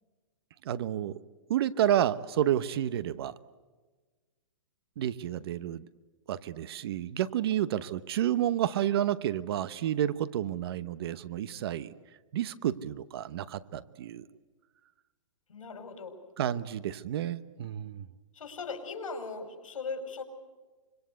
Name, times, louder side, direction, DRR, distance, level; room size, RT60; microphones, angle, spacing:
voice 1, 0.6-1.2 1.5-3.4 5.0-5.9 6.3-11.9 12.3-14.3 16.4-18.1, right 11 dB, 50° right, 16 dB, 1.0 m, -30 dB
voice 2, 15.5-16.2 18.3-20.2, left 4 dB, 85° left, 6 dB, 5.4 m, -39 dB
25.5 x 23.0 x 8.2 m, 1.3 s
hypercardioid pair, 155°, 17 cm